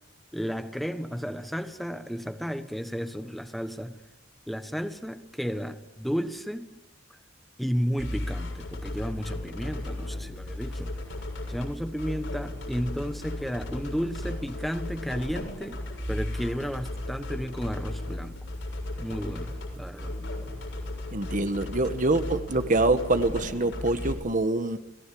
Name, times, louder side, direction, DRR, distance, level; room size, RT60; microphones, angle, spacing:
voice 1, 0.3-4.0 4.5-6.7 7.6-11.0 11.5-15.8 16.1-18.4 19.0-20.1, equal, ahead, 1.3 m, -33 dB
sound 1, 8.0-24.1, left 1 dB, 75° left, 7.1 m, -35 dB
voice 2, 21.1-24.8, right 2 dB, 45° right, 1.4 m, -25 dB
29.5 x 18.5 x 8.6 m
head